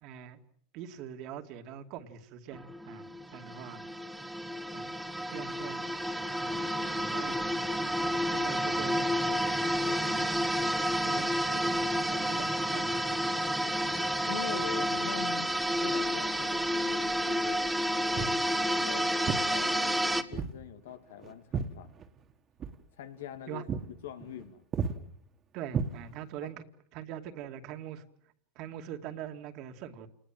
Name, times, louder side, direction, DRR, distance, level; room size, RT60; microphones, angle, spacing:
voice 1, 0.0-0.4 0.7-3.0 3.3-3.8 4.7-4.8 5.3-5.8 6.4-7.4 8.0-9.2 9.8-10.0 11.0-13.3 18.2-18.3 23.5-23.6 25.5-26.6 26.9-28.1 28.6-30.1, right 9 dB, 55° right, 7 dB, 2.4 m, -43 dB
sound 1, 2.5-20.2, equal, 5° right, 1.5 m, -30 dB
voice 2, 9.8-10.3 13.6-13.9 14.3-15.5 15.8-17.6 18.1-19.2 19.5-22.0 23.0-23.6 24.0-24.6 26.4-26.5, left 10 dB, 85° left, 9 dB, 2.6 m, -43 dB
Walk footsteps, 18.1-18.4 19.3-19.5 20.3-20.6 20.9-22.3 22.6-22.8 23.2-23.4 23.7-23.9 24.2-24.5 24.7-25.0 25.7-26.4, right 6 dB, 30° right, 2.1 m, -33 dB
28.5 x 20.0 x 7.7 m, 0.64 s
supercardioid pair, 120°, 0 cm